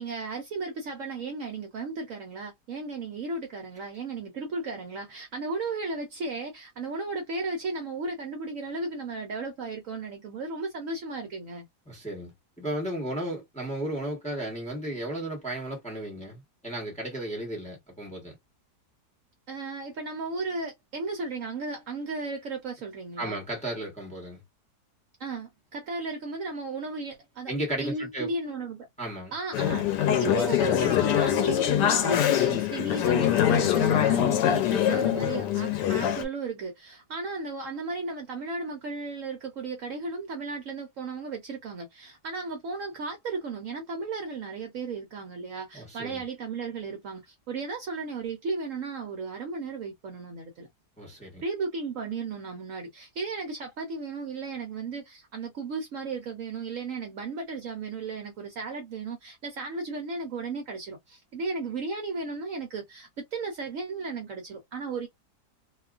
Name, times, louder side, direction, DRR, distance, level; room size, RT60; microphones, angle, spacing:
voice 1, 0.0-11.7 19.5-23.4 25.2-27.5 27.8-28.9 29.3-29.9 30.2-50.7 51.4-65.1, right 3 dB, 60° right, 0.9 m, -35 dB
voice 2, 11.9-12.3 12.6-18.3 23.2-24.4 27.5-28.3 29.0-29.3 45.7-46.2 51.0-51.4, right 1 dB, 5° left, 0.9 m, -34 dB
Conversation / Chatter, 29.5-36.2, left 10 dB, 90° left, 1.2 m, -24 dB
2.8 x 2.3 x 2.4 m
omnidirectional pair, 1.8 m